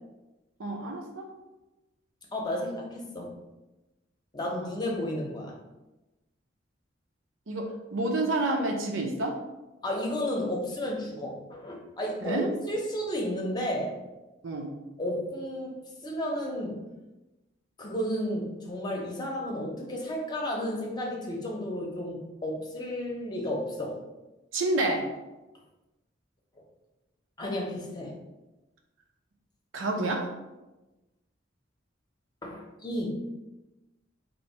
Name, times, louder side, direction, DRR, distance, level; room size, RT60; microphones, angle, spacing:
voice 1, 0.6-1.3 4.4-4.8 7.5-9.4 12.2-12.5 14.4-14.7 24.5-25.1 29.7-30.3, right 2 dB, 85° right, 2 dB, 0.6 m, -29 dB
voice 2, 2.3-3.3 4.3-5.5 9.8-14.0 15.0-15.7 16.0-16.8 17.8-24.0 27.4-28.1 32.4-33.1, left 1 dB, 20° left, -1 dB, 0.7 m, -32 dB
3.0 x 2.6 x 4.2 m, 1.0 s
head